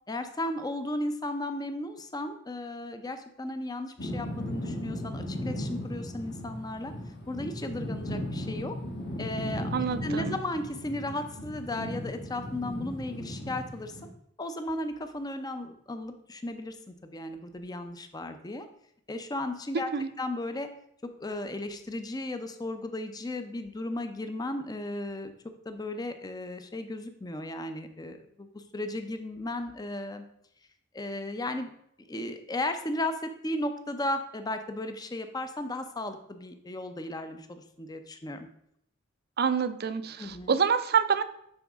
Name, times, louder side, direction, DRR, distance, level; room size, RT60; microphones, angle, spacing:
voice 1, 0.1-6.9 7.3-8.7 9.2-9.7 10.0-13.9 14.4-16.8 17.0-18.7 19.1-19.9 20.2-20.7 21.2-25.3 25.7-30.2 30.9-31.7 32.0-38.5 40.2-40.6, left 1 dB, 20° left, 8 dB, 0.5 m, -35 dB
sound 1, 4.0-14.1, equal, 55° left, 1.5 m, -36 dB
voice 2, 9.7-10.4 19.9-20.1 39.4-41.2, right 6 dB, 50° right, 12 dB, 0.5 m, -27 dB
9.9 x 4.1 x 3.5 m, 0.74 s
head